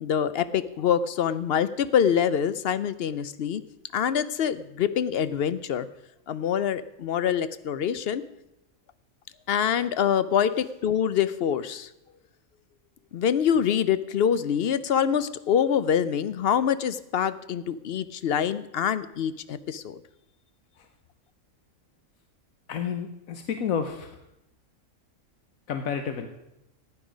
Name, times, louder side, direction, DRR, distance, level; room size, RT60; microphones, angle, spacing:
voice 1, 0.0-3.6 3.9-5.9 6.3-8.2 9.5-11.9 13.1-20.0, left 8 dB, 60° left, 14 dB, 0.7 m, -25 dB
voice 2, 22.7-24.2 25.7-26.3, left 7 dB, 85° left, 7 dB, 1.3 m, -30 dB
15.0 x 9.6 x 5.1 m, 0.87 s
omnidirectional pair, 1.4 m